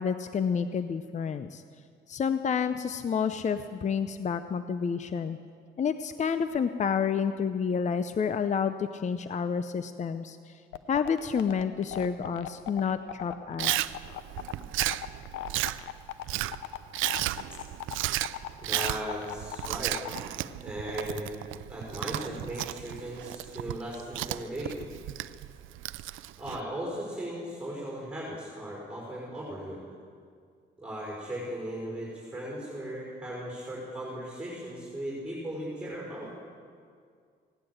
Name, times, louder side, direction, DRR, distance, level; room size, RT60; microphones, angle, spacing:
voice 1, 0.0-1.6 2.1-5.4 5.8-10.5 10.9-14.0, left 6 dB, 35° left, 11 dB, 0.6 m, -29 dB
sound 1, 10.7-20.2, left 13 dB, 90° left, 0.7 m, -38 dB
Chewing mastication, 13.6-26.6, right 15 dB, 85° right, 0.4 m, -34 dB
voice 2, 18.6-20.2 20.6-21.3 21.7-24.9 26.4-29.8 30.8-36.3, right 1 dB, 5° right, -4 dB, 5.4 m, -37 dB
17.0 x 10.0 x 7.8 m, 2.2 s
cardioid pair, 90°, 20 cm